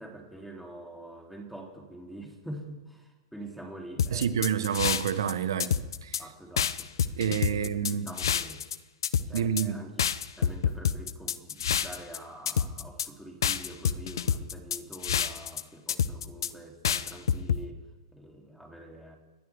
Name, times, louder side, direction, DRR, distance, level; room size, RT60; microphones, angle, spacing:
voice 1, 0.0-4.6 6.2-7.1 7.5-8.6 9.3-9.9 10.4-17.8 18.1-19.1, right 1 dB, ahead, 3.4 m, -45 dB
sound 1, 4.0-5.3 5.6-6.2 6.6-8.8 9.0-9.6 10.0-12.2 12.5-13.1 13.4-15.6 15.9-16.5 16.8-17.6, left 8 dB, 70° left, 0.7 m, -27 dB
voice 2, 4.1-5.7 6.0-6.2 7.2-8.1 9.3-9.9, right 8 dB, 70° right, 1.3 m, -28 dB
30.0 x 12.5 x 3.6 m
hypercardioid pair, 110°, 2 cm